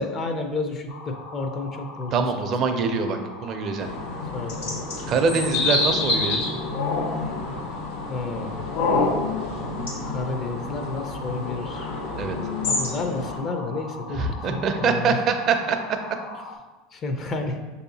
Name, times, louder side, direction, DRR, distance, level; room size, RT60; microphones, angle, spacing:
voice 1, 0.0-2.3 4.3-4.6 8.1-8.6 10.1-11.9 12.6-14.2 14.5-15.2 16.9-17.6, left 3 dB, 40° left, 5 dB, 0.5 m, -30 dB
sound 1, 0.9-16.6, left 2 dB, 60° left, 0.8 m, -40 dB
voice 2, 2.1-3.9 5.1-6.4 12.2-12.4 14.1-15.8, right 5 dB, 45° right, 6 dB, 0.5 m, -24 dB
sound 2, 3.8-13.4, left 3 dB, 80° left, 1.4 m, -27 dB
6.2 x 2.7 x 2.7 m, 1.2 s
supercardioid pair, 105°, 0 cm